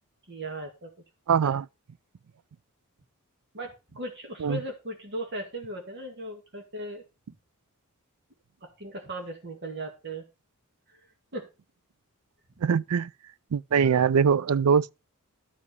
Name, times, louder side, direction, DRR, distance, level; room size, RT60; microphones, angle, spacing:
voice 1, 0.3-0.9 1.4-1.5 3.5-7.0 8.6-10.2 11.3-11.5 13.8-14.0, right 1 dB, 50° right, 2.1 m, -37 dB
voice 2, 1.3-1.7 4.4-4.6 12.6-13.1 13.5-14.9, right 6 dB, 75° right, 0.4 m, -22 dB
12.5 x 4.9 x 6.8 m
head